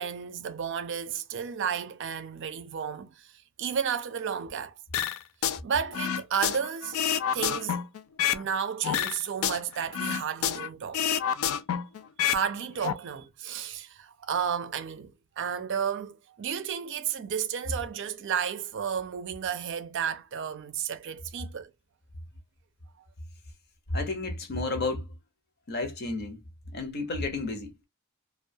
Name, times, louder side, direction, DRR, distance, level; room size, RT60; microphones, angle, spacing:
voice 1, 0.0-4.8 5.6-7.0 7.3-7.8 8.3-11.0 12.2-15.1 15.4-21.7, right 7 dB, 60° right, 0.4 m, -32 dB
sound 1, 4.9-5.6 5.9-8.5 8.8-10.7 10.9-12.4 12.7-12.9, left 9 dB, 70° left, 0.3 m, -28 dB
voice 2, 23.9-25.1 25.7-26.4 26.7-27.7, left 2 dB, 50° left, 0.7 m, -31 dB
2.3 x 2.2 x 2.6 m
head